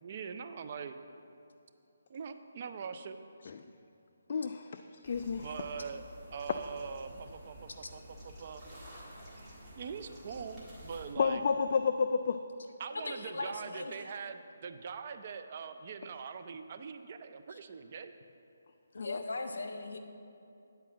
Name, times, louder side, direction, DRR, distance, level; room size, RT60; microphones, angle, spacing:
voice 1, 0.0-1.0 2.1-3.2 5.4-6.0 6.3-8.6 9.8-11.4 12.8-18.1, right 6 dB, 40° right, 8 dB, 0.5 m, -42 dB
voice 2, 4.3-5.5 11.2-12.4 19.0-19.2, left 5 dB, 45° left, 7 dB, 0.3 m, -31 dB
sound 1, 5.0-11.1, equal, 10° right, 1.7 m, -51 dB
voice 3, 12.9-14.0 17.5-17.6 18.9-20.0, left 2 dB, 80° left, 6 dB, 0.9 m, -39 dB
9.2 x 4.7 x 7.4 m, 2.6 s
hypercardioid pair, 165°, 0 cm